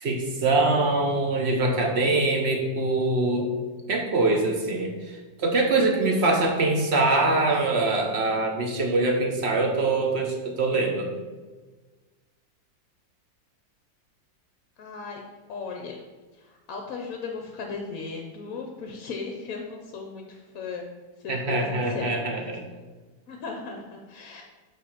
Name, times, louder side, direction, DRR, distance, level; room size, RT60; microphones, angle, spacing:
voice 1, 0.0-3.5 3.9-4.9 5.4-11.1 21.3-22.6, right 2 dB, 50° right, 2 dB, 0.8 m, -23 dB
voice 2, 14.8-15.2 15.5-16.0 16.3-20.9 21.2-22.2 23.3-24.4, left 4 dB, 60° left, 2 dB, 1.0 m, -36 dB
5.3 x 5.1 x 5.8 m, 1.3 s
omnidirectional pair, 2.0 m